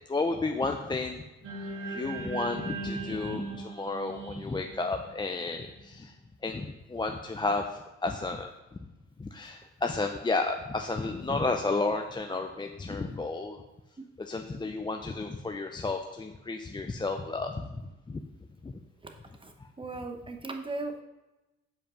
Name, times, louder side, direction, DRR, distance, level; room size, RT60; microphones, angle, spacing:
voice 1, 0.1-1.2 1.9-6.1 6.4-7.6 8.0-8.5 9.2-13.6 14.2-18.2 18.6-18.7 19.6-19.7, left 3 dB, 15° left, 4 dB, 0.5 m, -32 dB
sound 1, 1.4-5.8, right 3 dB, 90° right, 2.0 m, -39 dB
voice 2, 19.4-21.0, right 3 dB, 15° right, 4 dB, 1.0 m, -38 dB
7.4 x 5.2 x 5.0 m, 1.0 s
cardioid pair, 90°, 30 cm